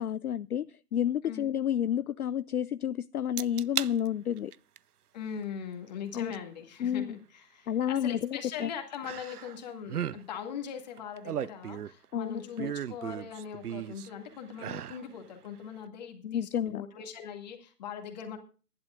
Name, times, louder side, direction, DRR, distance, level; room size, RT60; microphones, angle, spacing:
voice 1, 0.0-4.5 6.1-6.3 6.8-7.1 7.7-8.7 12.1-12.7 16.2-16.8, left 9 dB, 65° left, 16 dB, 0.5 m, -30 dB
sound 1, 3.4-3.9 4.4-4.8 6.3-6.4 9.0-9.6 9.8-10.2 11.0-12.0 12.6-14.1 14.5-15.0 15.5-15.6, right 9 dB, 65° right, 0.6 m, -35 dB
voice 2, 5.1-12.6 12.9-18.4, left 7 dB, 25° left, 4 dB, 2.2 m, -41 dB
23.0 x 11.5 x 2.5 m, 0.37 s
figure-of-eight pair, 155°, 50 cm